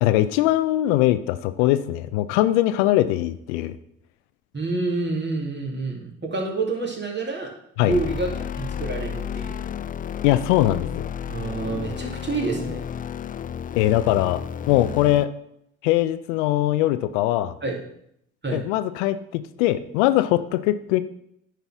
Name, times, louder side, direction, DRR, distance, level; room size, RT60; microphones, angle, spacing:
voice 1, 0.0-3.8 7.8-8.0 10.2-11.1 13.8-14.4 14.7-15.3 15.8-17.5 18.5-21.0, left 14 dB, 80° left, 12 dB, 0.5 m, -21 dB
voice 2, 4.5-7.5 7.8-8.3 8.6-9.6 11.3-12.8 17.6-17.8 18.4-18.6, right 3 dB, 30° right, -1 dB, 2.5 m, -28 dB
sound 1, 7.9-15.2, left 8 dB, 25° left, 0.4 m, -32 dB
10.0 x 4.0 x 5.9 m, 0.74 s
hypercardioid pair, 45°, 35 cm